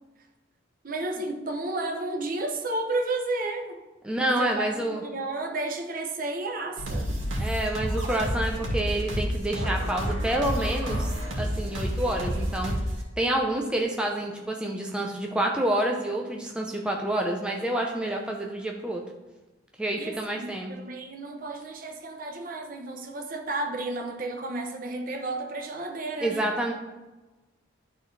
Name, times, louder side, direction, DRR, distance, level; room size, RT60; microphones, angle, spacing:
voice 1, 0.8-3.8 4.4-4.6 4.9-7.1 13.2-13.6 19.9-26.5, right 2 dB, 45° right, 4 dB, 0.8 m, -32 dB
voice 2, 4.0-5.0 7.4-11.1 11.4-12.7 13.2-19.0 19.8-20.7 26.2-26.7, right 1 dB, 5° right, 0 dB, 0.6 m, -28 dB
sound 1, 6.8-13.0, equal, 85° right, 2.1 m, -29 dB
11.5 x 4.1 x 3.3 m, 1.1 s
head